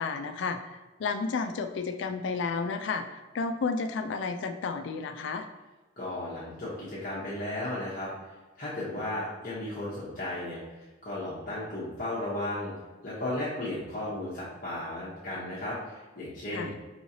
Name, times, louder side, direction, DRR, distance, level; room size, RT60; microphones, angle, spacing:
voice 1, 0.0-5.5 16.5-16.7, left 4 dB, 65° left, 7 dB, 0.3 m, -32 dB
voice 2, 6.0-8.1 8.6-12.7 13.0-16.7, left 1 dB, 45° left, -8 dB, 0.9 m, -35 dB
4.7 x 3.1 x 2.7 m, 1.2 s
head